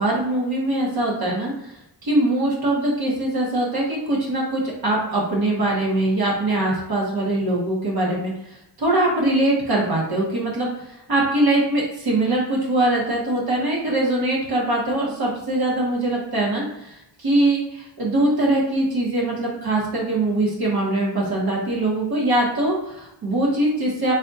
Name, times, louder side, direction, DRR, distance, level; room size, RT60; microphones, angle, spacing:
voice 1, 0.0-1.7 2.0-8.3 8.8-24.1, right 1 dB, 55° right, -3 dB, 1.3 m, -22 dB
4.1 x 2.4 x 4.0 m, 0.89 s
wide cardioid pair, 135°, 42 cm